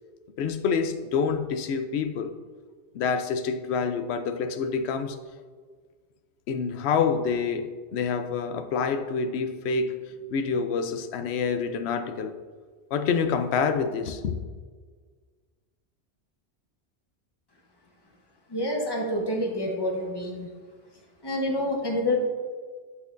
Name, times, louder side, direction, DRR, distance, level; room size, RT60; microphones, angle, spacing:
voice 1, 0.4-2.3 2.9-5.2 6.5-12.3 12.9-14.4, left 5 dB, 75° left, 9 dB, 0.8 m, -27 dB
voice 2, 18.5-20.5 21.2-22.2, left 1 dB, 25° left, 0 dB, 1.0 m, -27 dB
11.0 x 4.3 x 2.6 m, 1.5 s
omnidirectional pair, 1.1 m